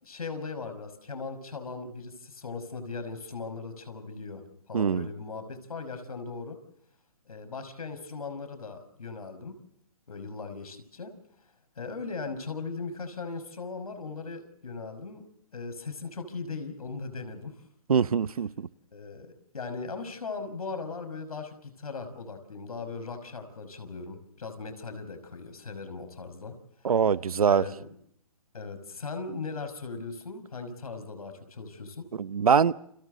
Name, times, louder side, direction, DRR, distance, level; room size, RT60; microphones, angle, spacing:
voice 1, 0.0-4.4 4.7-6.6 7.3-9.5 10.1-11.1 11.8-15.2 15.5-17.5 18.9-26.5 27.4-27.9 28.5-32.0, left 4 dB, 80° left, 9 dB, 5.6 m, -38 dB
voice 2, 4.7-5.1 17.9-18.7 26.8-27.7 32.2-32.7, right 6 dB, 75° right, 17 dB, 1.0 m, -23 dB
29.5 x 26.5 x 4.0 m, 0.72 s
hypercardioid pair, 150°, 19 cm